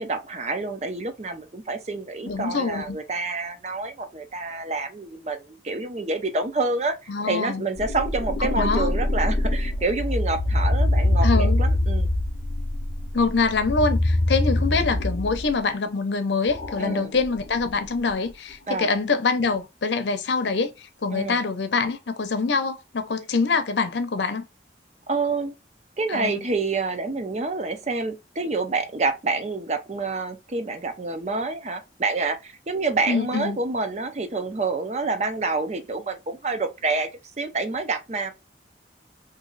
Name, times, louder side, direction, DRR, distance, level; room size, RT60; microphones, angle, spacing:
voice 1, 0.0-12.1 16.8-17.1 18.7-18.9 21.1-21.4 25.1-25.5 26.0-37.1 37.4-38.3, right 3 dB, 40° right, 0.5 m, -28 dB
voice 2, 2.3-3.0 7.1-7.7 8.6-8.9 11.2-11.6 13.1-24.4 26.1-26.5 33.1-33.6, left 4 dB, 80° left, 0.6 m, -25 dB
sound 1, 7.8-15.6 16.5-18.3, left 1 dB, 40° left, 0.8 m, -24 dB
3.0 x 2.7 x 3.8 m
head